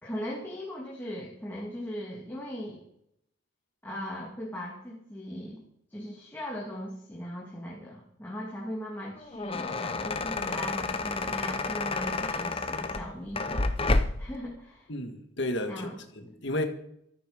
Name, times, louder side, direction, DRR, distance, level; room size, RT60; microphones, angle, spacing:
voice 1, 0.0-2.8 3.8-5.6 5.9-13.7 14.2-14.9 15.7-16.3, equal, 10° left, 2.7 m, -38 dB
sound 1, 9.1-14.4, left 3 dB, 25° left, 0.9 m, -30 dB
voice 2, 14.9-15.9 16.2-16.6, left 1 dB, 60° left, 1.9 m, -32 dB
13.5 x 13.5 x 5.3 m
head